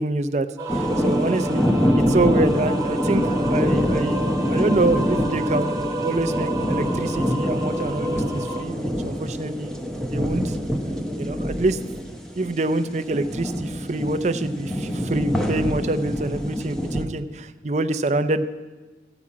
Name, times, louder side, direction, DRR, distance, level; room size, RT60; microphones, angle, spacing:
voice 1, 0.0-1.6 2.1-3.2 3.5-9.7 10.1-10.6 11.2-11.8 12.3-18.5, right 2 dB, 40° right, 10 dB, 0.5 m, -26 dB
sound 1, 0.6-8.6, right 1 dB, 20° right, 1.0 m, -30 dB
sound 2, 0.7-17.0, equal, 5° left, 0.7 m, -25 dB
14.0 x 5.0 x 8.4 m, 1.2 s
head